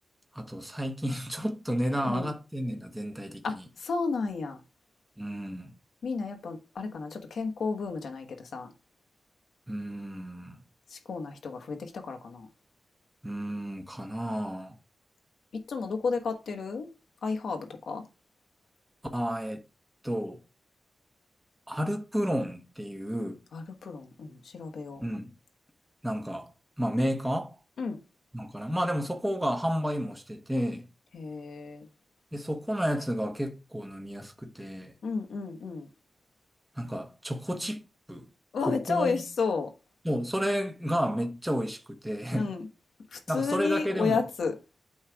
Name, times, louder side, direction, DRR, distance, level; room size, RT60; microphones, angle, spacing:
voice 1, 0.3-3.4 5.2-5.7 9.7-10.6 13.2-14.7 19.1-19.6 20.0-20.4 21.7-23.4 25.0-25.3 26.0-26.5 26.8-27.5 28.3-30.9 32.3-34.9 36.8-37.8 38.1-38.3 38.7-39.2 40.0-42.5 43.3-44.2, equal, 5° right, 1.1 m, -31 dB
voice 2, 1.9-2.3 2.7-2.8 3.4-4.6 6.0-8.7 10.9-12.5 15.7-16.9 17.2-18.0 23.5-25.0 27.8-28.0 31.1-31.9 35.0-35.9 38.5-39.7 42.3-42.7 43.1-44.5, left 4 dB, 85° left, 1.3 m, -32 dB
8.6 x 3.3 x 4.7 m
wide cardioid pair, 115°, 0 cm